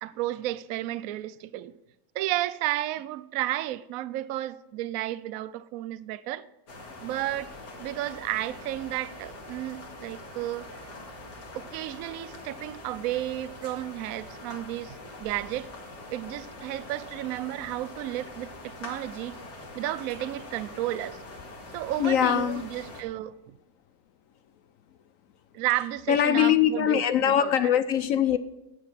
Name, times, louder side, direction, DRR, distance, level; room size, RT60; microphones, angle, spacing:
voice 1, 0.0-1.7 2.1-6.5 7.0-7.5 7.8-10.8 11.5-15.7 16.1-19.4 19.7-21.2 21.7-23.6 25.5-27.5, right 14 dB, 70° right, 0.9 m, -32 dB
sound 1, 6.7-23.0, left 2 dB, 85° left, 2.6 m, -44 dB
voice 2, 22.0-22.6 26.1-28.4, left 10 dB, 70° left, 0.8 m, -22 dB
11.5 x 8.4 x 5.6 m
omnidirectional pair, 1.7 m